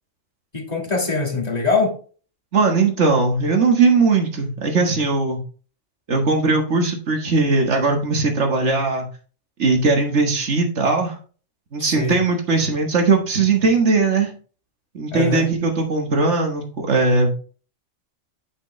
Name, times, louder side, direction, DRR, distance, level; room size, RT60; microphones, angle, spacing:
voice 1, 0.5-2.0 11.8-12.2 15.1-15.5, left 4 dB, 35° left, 0 dB, 1.8 m, -23 dB
voice 2, 2.5-5.4 6.1-9.0 9.6-11.2 11.7-14.3 14.9-17.4, right 3 dB, 70° right, 3 dB, 1.8 m, -19 dB
8.2 x 6.1 x 3.2 m, 0.40 s
omnidirectional pair, 1.2 m